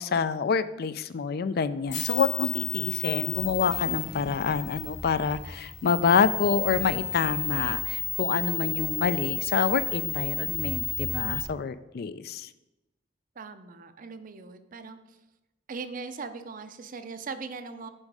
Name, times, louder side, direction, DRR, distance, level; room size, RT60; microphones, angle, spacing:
voice 1, 0.0-12.5, left 6 dB, 55° left, 14 dB, 0.4 m, -27 dB
sound 1, 1.9-11.4, left 7 dB, 85° left, 2.7 m, -32 dB
sound 2, 3.6-5.5 6.6-8.4, equal, ahead, 0.7 m, -46 dB
voice 2, 13.4-15.2 15.7-17.9, right 4 dB, 45° right, 10 dB, 0.6 m, -40 dB
8.7 x 5.4 x 4.8 m, 0.98 s
head